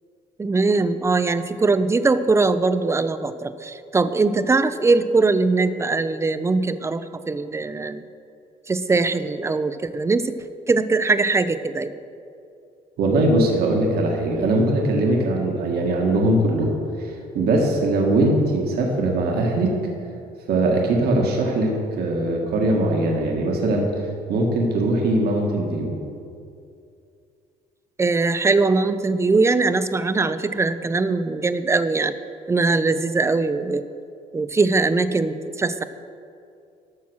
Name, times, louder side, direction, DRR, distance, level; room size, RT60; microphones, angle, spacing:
voice 1, 0.4-8.0 8.7-10.4 10.7-11.9 28.0-32.1 32.5-33.8 34.3-35.8, right 3 dB, 15° right, 12 dB, 0.5 m, -21 dB
voice 2, 13.0-19.7 20.5-23.9 24.3-26.0, right 2 dB, 70° right, 0 dB, 1.7 m, -21 dB
13.0 x 6.0 x 6.2 m, 2.5 s
cardioid pair, 110°, 17 cm